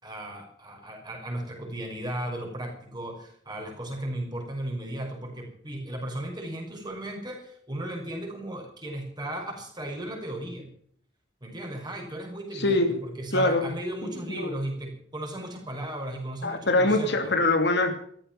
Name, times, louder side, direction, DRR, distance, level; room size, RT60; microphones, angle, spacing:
voice 1, 0.0-10.7 11.4-17.4, right 1 dB, 20° right, 2 dB, 5.7 m, -36 dB
voice 2, 12.5-12.9 13.3-13.7 14.0-14.5 16.4-18.0, left 2 dB, 60° left, 6 dB, 2.6 m, -24 dB
14.5 x 14.5 x 6.0 m, 0.63 s
head